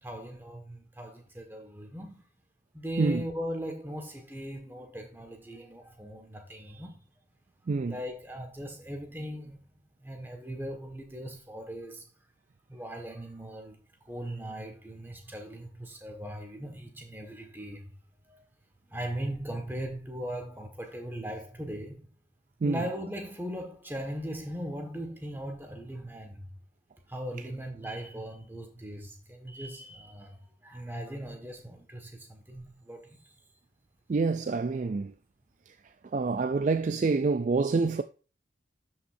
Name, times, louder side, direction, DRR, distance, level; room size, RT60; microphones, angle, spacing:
voice 1, 0.0-2.2 2.7-7.0 7.8-9.6 10.0-12.0 12.7-13.8 14.0-17.9 18.3-18.4 18.9-22.2 22.6-26.5 27.1-33.4, equal, 10° right, 1.6 m, -39 dB
voice 2, 34.1-35.1 36.1-38.0, right 4 dB, 40° right, 0.3 m, -27 dB
12.5 x 5.6 x 2.7 m
head